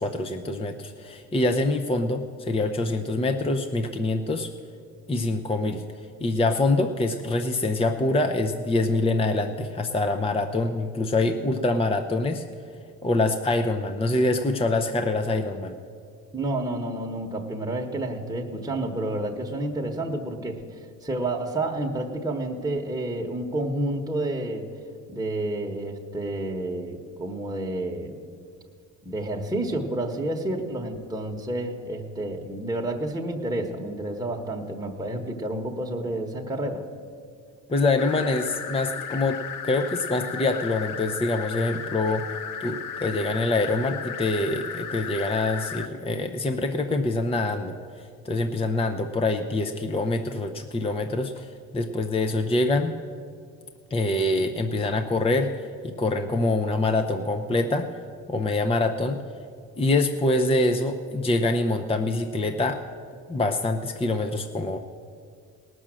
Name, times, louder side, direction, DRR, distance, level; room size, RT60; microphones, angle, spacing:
voice 1, 0.0-4.5 5.1-5.8 6.2-12.4 13.0-15.8 37.7-42.2 42.6-52.9 53.9-57.9 58.3-59.2 59.8-62.8 63.3-64.8, left 2 dB, 15° left, 6 dB, 0.7 m, -25 dB
voice 2, 16.3-24.7 25.1-28.2 29.0-36.8, right 1 dB, 10° right, 1 dB, 1.3 m, -30 dB
sound 1, 38.0-45.9, left 7 dB, 55° left, 0.9 m, -35 dB
18.0 x 6.2 x 7.6 m, 2.2 s
supercardioid pair, 75°, 38 cm